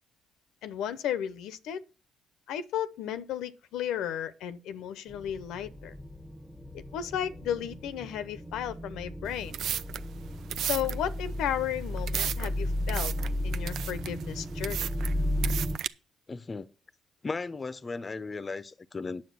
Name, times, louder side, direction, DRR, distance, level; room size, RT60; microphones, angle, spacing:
voice 1, 0.6-1.8 2.5-5.9 6.7-9.7 10.6-13.1 13.4-14.9, left 10 dB, 90° left, 0.8 m, -34 dB
sound 1, 5.1-15.8, left 1 dB, 5° right, 1.0 m, -34 dB
sound 2, 9.2-15.9, right 10 dB, 75° right, 0.5 m, -35 dB
voice 2, 16.3-16.7 17.2-19.2, left 4 dB, 30° left, 0.7 m, -36 dB
9.5 x 7.5 x 6.1 m
cardioid pair, 90°, 0 cm